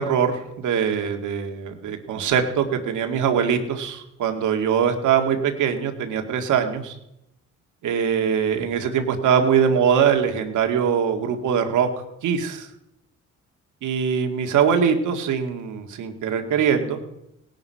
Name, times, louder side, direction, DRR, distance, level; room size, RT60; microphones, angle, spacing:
voice 1, 0.0-6.9 7.8-11.9 12.2-12.7 13.8-17.0, right 7 dB, 80° right, 5 dB, 2.0 m, -22 dB
18.0 x 11.0 x 5.6 m, 0.84 s
cardioid pair, 90°, 30 cm